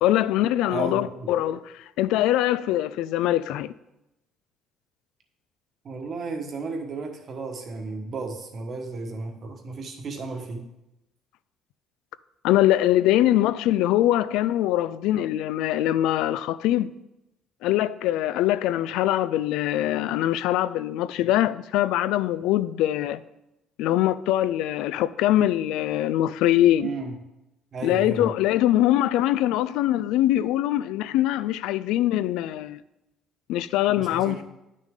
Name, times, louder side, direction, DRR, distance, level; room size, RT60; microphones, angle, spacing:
voice 1, 0.0-1.6 2.0-3.7 12.4-16.9 17.6-23.2 23.8-26.9 27.8-32.8 33.5-34.4, left 13 dB, 85° left, 0.3 m, -23 dB
voice 2, 0.7-1.3 5.8-10.6 26.8-27.1 27.7-28.3 34.0-34.4, right 4 dB, 35° right, 1.3 m, -33 dB
10.0 x 6.3 x 3.7 m
cardioid pair, 155°, 0 cm